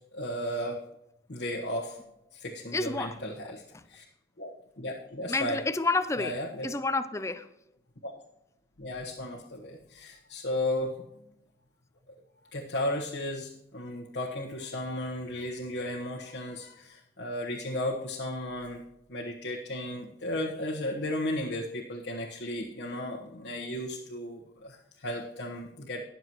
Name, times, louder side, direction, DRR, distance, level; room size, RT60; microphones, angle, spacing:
voice 1, 0.1-0.8 1.3-2.0 2.3-3.6 3.9-4.0 4.4-4.5 4.8-5.6 6.2-6.7 8.0-8.1 8.8-11.0 12.5-18.8 19.1-26.0, left 1 dB, 90° left, -3 dB, 1.3 m, -34 dB
voice 2, 2.7-3.2 3.7-3.8 5.3-7.5, left 3 dB, 15° left, 12 dB, 0.5 m, -30 dB
20.5 x 7.0 x 3.0 m, 0.88 s
head